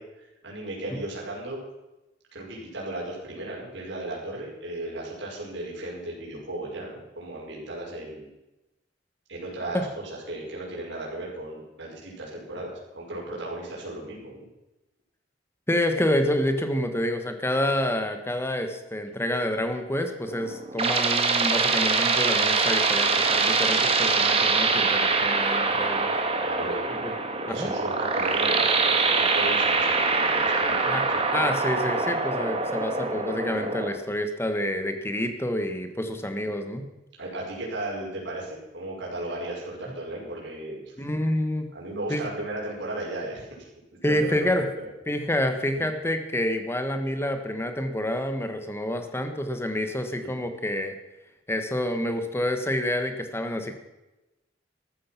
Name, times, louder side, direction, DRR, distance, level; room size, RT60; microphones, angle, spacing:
voice 1, 0.0-1.6 2.3-8.3 9.3-14.5 26.5-26.8 27.5-31.4 37.2-40.8 41.7-43.7 44.0-44.9 50.2-50.4, right 1 dB, 70° right, -4 dB, 5.6 m, -35 dB
voice 2, 15.7-26.1 27.5-27.7 30.9-31.0 31.3-36.9 41.0-41.7 42.1-42.3 44.0-44.7 45.1-50.9 51.5-53.7, left 1 dB, 15° left, 7 dB, 1.5 m, -28 dB
sound 1, 20.3-33.9, right 4 dB, 30° right, 1.6 m, -24 dB
14.0 x 13.0 x 6.0 m, 0.99 s
head